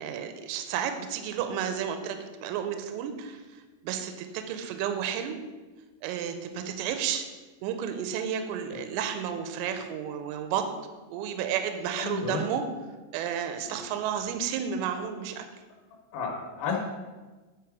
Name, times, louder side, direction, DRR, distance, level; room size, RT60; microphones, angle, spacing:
voice 1, 0.0-5.4 6.0-7.3 7.6-10.7 11.1-12.6 13.1-15.4, right 8 dB, 80° right, 7 dB, 2.7 m, -32 dB
voice 2, 12.0-12.4 16.1-16.8, left 5 dB, 85° left, 0 dB, 3.5 m, -32 dB
10.5 x 3.9 x 4.9 m, 1.3 s
omnidirectional pair, 5.6 m